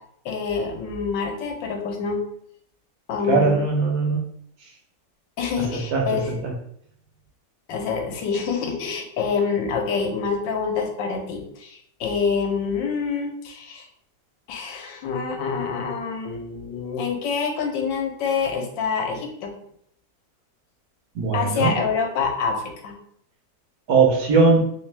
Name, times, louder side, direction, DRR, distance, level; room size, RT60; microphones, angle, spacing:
voice 1, 0.2-2.2 3.1-3.6 5.4-6.4 7.7-13.8 14.5-19.5 21.3-22.9, left 5 dB, 80° left, 3 dB, 1.4 m, -26 dB
voice 2, 3.3-4.2 5.9-6.0 6.4-6.5 21.1-21.8 23.9-24.6, right 4 dB, 65° right, 0 dB, 1.2 m, -19 dB
3.3 x 3.2 x 3.2 m, 0.69 s
omnidirectional pair, 2.0 m